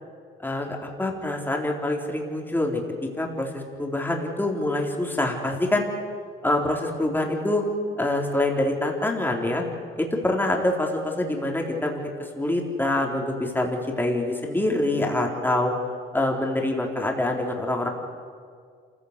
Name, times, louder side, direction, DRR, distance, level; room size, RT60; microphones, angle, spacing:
voice 1, 0.4-2.8 3.2-5.8 6.4-7.6 8.0-9.6 10.0-12.0 12.4-15.7 16.1-17.9, left 1 dB, 10° left, 1 dB, 4.1 m, -25 dB
27.0 x 16.0 x 8.4 m, 2.1 s
cardioid pair, 90°, 20 cm